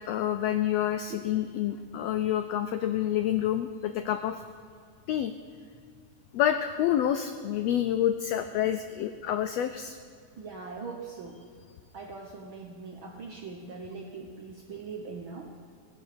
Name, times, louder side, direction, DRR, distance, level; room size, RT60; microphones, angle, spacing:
voice 1, 0.1-4.4 5.1-5.3 6.3-10.0, left 11 dB, 90° left, 9 dB, 1.4 m, -28 dB
voice 2, 10.4-11.4 11.9-15.5, right 4 dB, 70° right, 1 dB, 1.2 m, -41 dB
17.0 x 9.9 x 6.6 m, 2.1 s
omnidirectional pair, 3.6 m